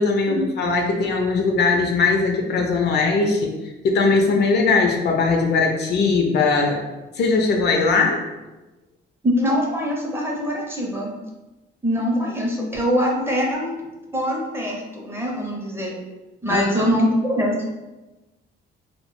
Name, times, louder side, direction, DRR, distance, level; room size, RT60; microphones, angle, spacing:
voice 1, 0.0-3.5 3.8-6.8 7.2-8.2 16.5-16.9, left 4 dB, 60° left, 2 dB, 0.4 m, -20 dB
voice 2, 9.2-11.1 11.8-13.7 14.1-15.9 16.4-17.6, equal, 10° right, -2 dB, 0.5 m, -23 dB
2.1 x 2.1 x 3.0 m, 1.1 s
cardioid pair, 90°, 20 cm